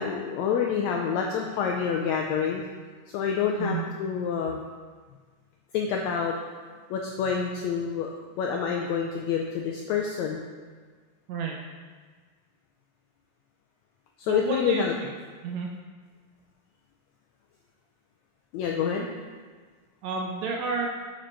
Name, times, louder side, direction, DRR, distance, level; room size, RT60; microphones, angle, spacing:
voice 1, 0.0-2.6 3.1-4.6 5.7-6.4 6.9-8.1 8.4-10.4 14.2-14.9 18.5-19.1, left 7 dB, 85° left, 1 dB, 1.6 m, -27 dB
voice 2, 11.3-11.6 14.3-15.1 15.4-15.7 20.0-20.9, right 5 dB, 75° right, 0 dB, 1.7 m, -30 dB
7.4 x 5.0 x 4.5 m, 1.5 s
omnidirectional pair, 3.7 m